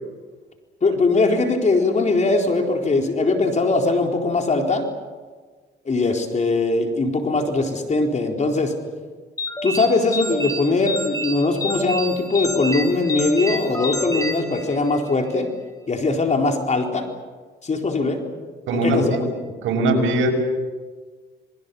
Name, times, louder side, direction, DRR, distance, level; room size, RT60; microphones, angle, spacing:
voice 1, 0.8-4.9 5.8-8.7 9.6-15.5 15.9-17.1 17.6-18.2 18.7-19.2, left 3 dB, 35° left, 3 dB, 4.1 m, -21 dB
sound 1, 9.4-15.1, equal, 15° left, 3.2 m, -29 dB
voice 2, 18.7-19.2 19.6-20.3, right 1 dB, 85° right, 1 dB, 6.3 m, -20 dB
27.0 x 22.5 x 7.0 m, 1.4 s
cardioid pair, 90°, 20 cm